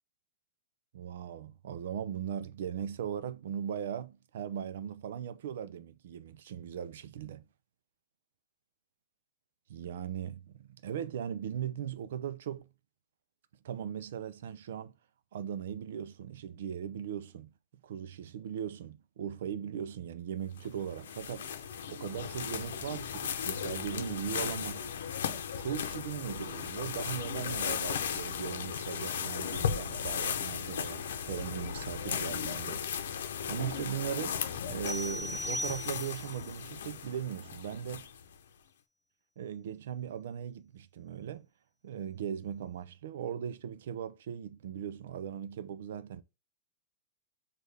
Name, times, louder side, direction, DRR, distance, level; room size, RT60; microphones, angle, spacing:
voice 1, 0.9-7.4 9.7-12.7 13.6-14.9 15.3-17.5 17.8-21.5 21.9-24.9 25.3-32.9 33.5-34.4 34.7-38.1 39.4-41.5 41.8-46.2, right 9 dB, 65° right, 0.5 m, -39 dB
sound 1, 20.6-38.3, left 8 dB, 85° left, 0.7 m, -36 dB
sound 2, 34.9-36.4, left 1 dB, 10° right, 1.5 m, -38 dB
6.4 x 2.5 x 3.4 m
supercardioid pair, 175°, 0 cm